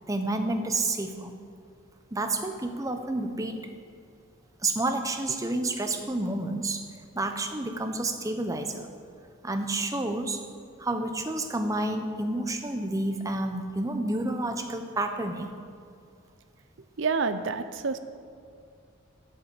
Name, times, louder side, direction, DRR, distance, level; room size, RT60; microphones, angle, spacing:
voice 1, 0.1-1.3 2.1-3.6 4.6-6.8 7.1-8.9 9.4-10.5 10.8-15.6, right 2 dB, 15° right, 6 dB, 0.7 m, -29 dB
voice 2, 17.0-18.0, right 4 dB, 60° right, 10 dB, 0.6 m, -28 dB
10.0 x 7.4 x 8.2 m, 2.3 s
head